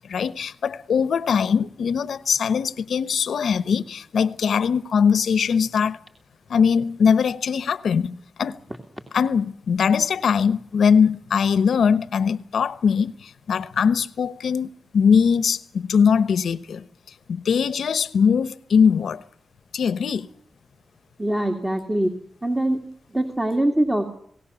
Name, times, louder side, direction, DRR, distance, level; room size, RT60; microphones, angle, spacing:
voice 1, 0.1-6.0 6.5-8.6 9.1-16.8 17.3-19.2 19.7-20.3, left 6 dB, 85° left, 1.0 m, -21 dB
voice 2, 21.2-22.1 22.4-22.8 23.1-24.1, right 1 dB, 15° right, 2.5 m, -23 dB
27.0 x 18.0 x 7.0 m
wide cardioid pair, 95°, 0 cm